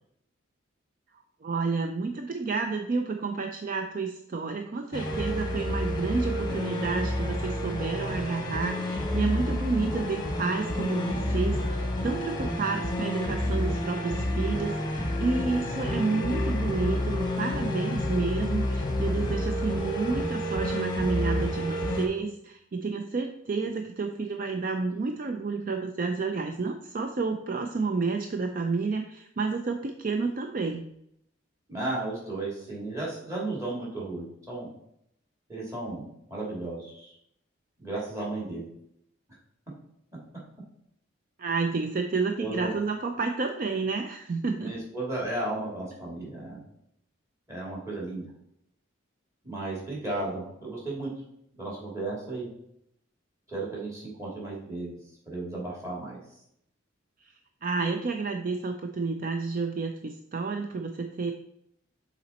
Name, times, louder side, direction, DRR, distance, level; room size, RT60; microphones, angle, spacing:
voice 1, 1.4-30.8 41.4-44.7 57.2-57.3 57.6-61.3, right 4 dB, 45° right, 5 dB, 0.4 m, -30 dB
sound 1, 4.9-22.1, left 1 dB, 20° left, 1.0 m, -29 dB
voice 2, 31.7-34.7 35.5-37.1 37.8-38.7 42.4-42.7 44.6-46.6 47.5-48.2 49.4-51.1 51.6-52.5 53.5-55.0 55.3-56.2, right 2 dB, 15° right, -4 dB, 2.4 m, -34 dB
6.9 x 4.1 x 4.1 m, 0.76 s
head